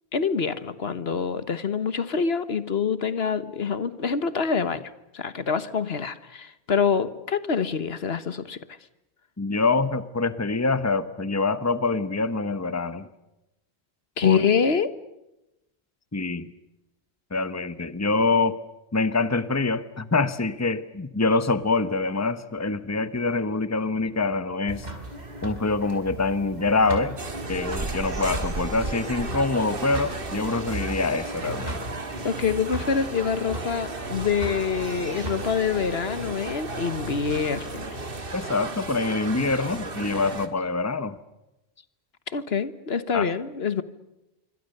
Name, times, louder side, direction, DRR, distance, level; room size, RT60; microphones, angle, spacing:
voice 1, 0.1-8.6 14.2-14.9 32.2-38.0 42.3-43.8, left 6 dB, 75° left, 1.5 m, -26 dB
voice 2, 9.4-13.1 14.2-14.4 16.1-16.5 17.3-18.6 18.9-24.9 25.4-27.2 27.5-31.8 38.3-41.2 43.1-43.3, left 3 dB, 15° left, 1.0 m, -25 dB
sound 1, 24.7-38.2, right 1 dB, 40° right, 4.9 m, -38 dB
sound 2, 27.2-40.5, right 2 dB, 60° right, 2.1 m, -34 dB
26.5 x 25.0 x 6.7 m
omnidirectional pair, 1.1 m